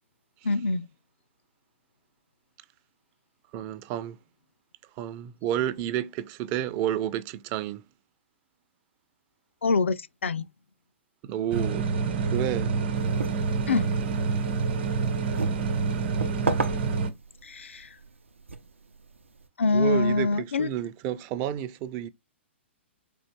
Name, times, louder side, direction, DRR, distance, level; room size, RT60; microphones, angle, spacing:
voice 1, 0.4-0.9 9.6-10.5 13.7-13.9 17.4-17.9 19.6-20.7, left 3 dB, 75° left, 0.4 m, -25 dB
voice 2, 3.5-4.2 5.0-7.8 11.2-11.9 12.3-12.7 19.7-22.1, right 11 dB, 30° right, 0.4 m, -30 dB
sound 1, 11.5-17.1, right 5 dB, 55° right, 1.0 m, -27 dB
sound 2, 12.9-19.5, right 3 dB, 85° right, 0.5 m, -36 dB
4.3 x 2.5 x 3.2 m
figure-of-eight pair, 120°, 7 cm